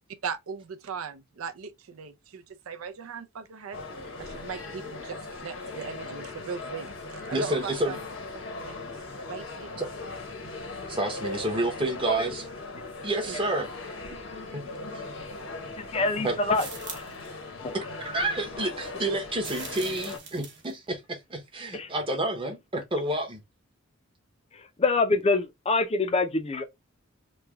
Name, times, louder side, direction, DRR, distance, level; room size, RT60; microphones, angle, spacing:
voice 1, 0.2-3.8 4.2-8.0 8.7-8.8 9.3-9.7 13.3-13.4, right 6 dB, 85° right, 0.5 m, -38 dB
sound 1, 3.7-20.2, left 3 dB, 75° left, 1.0 m, -39 dB
voice 2, 7.3-7.9 9.8-9.9 10.9-12.4 13.0-13.7 14.5-14.6 14.9-15.0 16.2-16.4 17.7-23.4, right 2 dB, 25° right, 0.8 m, -29 dB
voice 3, 15.8-16.7 17.6-17.7 21.7-21.9 24.5-26.6, left 3 dB, 30° left, 0.5 m, -25 dB
sound 2, 16.5-17.3 19.4-20.7, right 6 dB, 60° right, 1.0 m, -42 dB
3.2 x 2.2 x 3.4 m
head